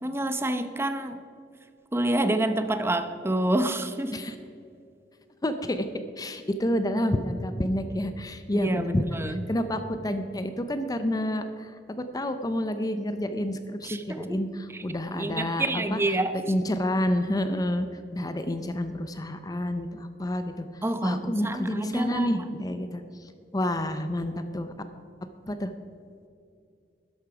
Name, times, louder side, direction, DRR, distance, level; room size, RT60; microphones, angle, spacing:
voice 1, 0.0-1.2 1.9-4.2 8.5-9.5 13.8-14.4 14.7-14.8 15.1-16.4 20.8-22.3, right 1 dB, 15° right, 9 dB, 0.8 m, -28 dB
voice 2, 5.4-5.9 6.2-16.0 16.5-17.9 18.1-24.7 25.5-25.7, left 1 dB, 20° left, 9 dB, 0.6 m, -29 dB
13.0 x 10.5 x 4.9 m, 2.5 s
head